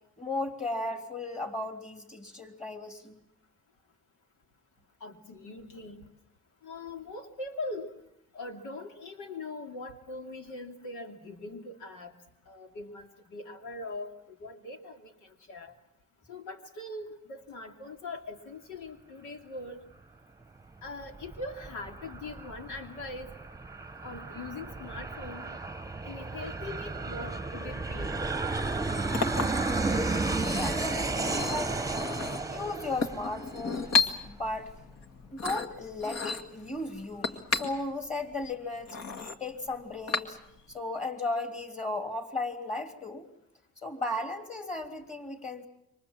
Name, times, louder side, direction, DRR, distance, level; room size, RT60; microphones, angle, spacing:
voice 1, 0.2-3.2 29.4-31.8 32.4-34.7 35.3-39.0 39.4-40.4 40.7-43.2 43.8-45.7, left 2 dB, 25° left, 5 dB, 3.2 m, -36 dB
voice 2, 5.0-6.1 6.6-7.9 8.3-12.1 12.5-15.7 16.3-19.8 20.8-23.3 24.0-25.5 26.0-28.2, left 2 dB, 90° left, 4 dB, 2.8 m, -41 dB
Aircraft, 20.8-34.0, right 3 dB, 10° right, 1.0 m, -33 dB
Chink clink, 28.7-40.7, left 5 dB, 60° left, 2.1 m, -34 dB
27.5 x 24.5 x 7.4 m, 0.80 s
cardioid pair, 90°, 30 cm